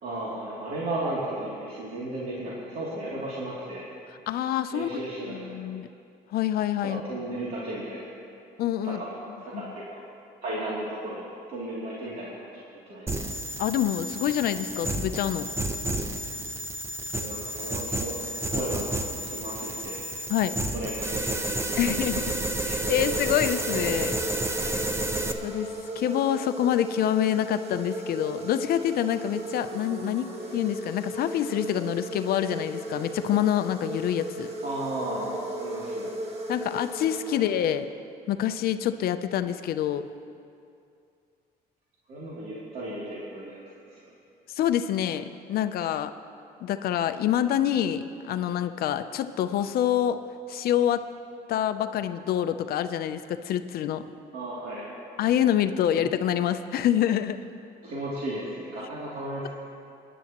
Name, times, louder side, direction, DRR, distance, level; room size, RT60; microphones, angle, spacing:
voice 1, 0.0-3.9 4.7-5.3 6.8-8.1 8.8-9.1 9.4-10.0 10.4-13.1 17.2-18.2 18.5-20.0 20.5-22.3 34.6-36.1 37.3-37.4 42.1-44.1 54.3-54.9 55.9-56.0 57.8-59.5, right 1 dB, 60° right, -8 dB, 2.8 m, -35 dB
voice 2, 4.3-5.0 5.3-5.9 6.3-7.1 8.6-9.0 13.6-15.5 20.3-20.5 21.8-24.2 24.5-24.9 25.4-34.5 36.5-37.9 38.3-40.1 44.5-46.1 46.6-50.2 50.5-51.0 51.5-54.0 55.2-57.5, left 10 dB, 65° left, 10 dB, 0.6 m, -26 dB
sound 1, 13.1-25.3, right 1 dB, 15° right, 0.8 m, -31 dB
sound 2, 22.7-37.9, right 1 dB, 40° right, 1.6 m, -36 dB
22.5 x 11.0 x 3.0 m, 2.5 s
cardioid pair, 110°, 17 cm